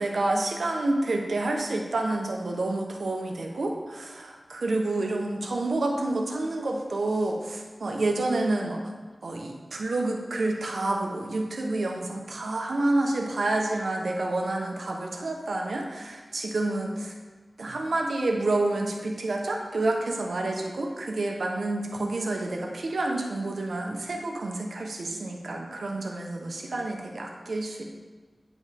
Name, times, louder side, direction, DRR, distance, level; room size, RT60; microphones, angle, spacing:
voice 1, 0.0-8.8 9.2-17.1 17.6-27.8, right 2 dB, 80° right, 1 dB, 0.9 m, -29 dB
9.5 x 5.2 x 3.5 m, 1.4 s
wide cardioid pair, 70°, 0 cm